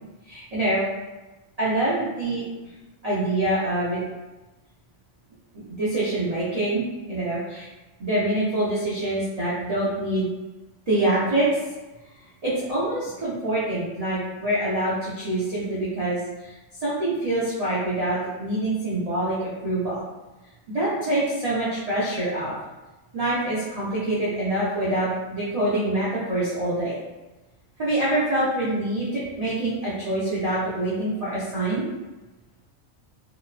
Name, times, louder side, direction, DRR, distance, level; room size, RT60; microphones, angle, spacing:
voice 1, 0.3-0.9 1.6-2.4 3.0-4.0 5.8-7.7 8.0-10.3 10.9-11.5 12.4-16.5 16.8-20.0 20.7-22.5 23.1-27.0 27.8-31.9, right 1 dB, 45° right, -10 dB, 0.5 m, -25 dB
2.9 x 2.1 x 2.3 m, 1.1 s
omnidirectional pair, 1.4 m